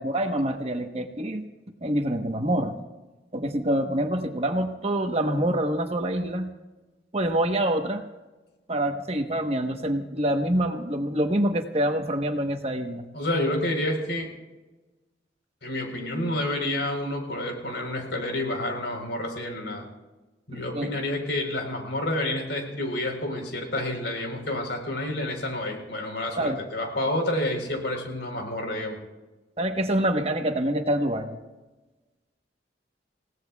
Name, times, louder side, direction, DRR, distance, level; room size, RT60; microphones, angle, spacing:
voice 1, 0.0-1.4 1.8-2.8 3.3-6.5 7.1-8.0 8.7-13.0 20.5-20.9 26.4-26.6 29.6-31.4, right 1 dB, 35° right, 5 dB, 1.1 m, -26 dB
voice 2, 13.1-14.3 15.6-19.8 20.5-29.0, left 1 dB, 90° left, 3 dB, 4.0 m, -29 dB
29.0 x 17.0 x 2.3 m, 1.2 s
head